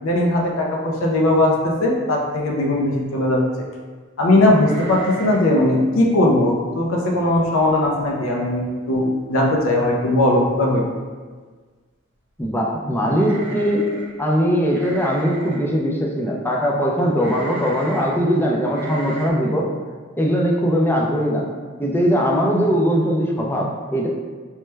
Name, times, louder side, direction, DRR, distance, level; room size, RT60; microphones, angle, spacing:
voice 1, 0.0-3.4 4.2-10.8, left 1 dB, 90° left, -1 dB, 0.5 m, -19 dB
sound 1, 4.6-5.6 5.8-5.9 6.4-6.7 7.2-7.3 7.6-8.1 8.4-8.5 9.7-9.8 10.1-10.5 13.1-14.2 14.7-15.7 17.2-18.2 18.7-19.3, right 2 dB, 60° right, 0.5 m, -36 dB
voice 2, 12.4-13.8 14.2-19.7 20.2-21.4 21.8-24.1, equal, 10° left, -2 dB, 0.4 m, -20 dB
3.1 x 2.1 x 3.2 m, 1.5 s
head